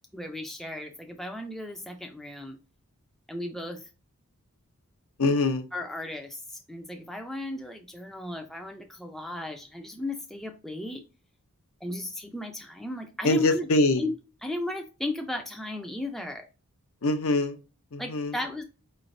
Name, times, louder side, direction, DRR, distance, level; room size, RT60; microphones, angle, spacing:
voice 1, 0.1-2.6 3.3-3.8 5.7-11.0 11.8-13.7 14.0-14.1 14.4-16.5 18.0-18.6, left 1 dB, ahead, 0.4 m, -35 dB
voice 2, 5.2-5.7 13.2-14.0 17.0-17.6 17.9-18.3, left 2 dB, 65° left, 0.6 m, -24 dB
4.9 x 3.1 x 2.6 m
head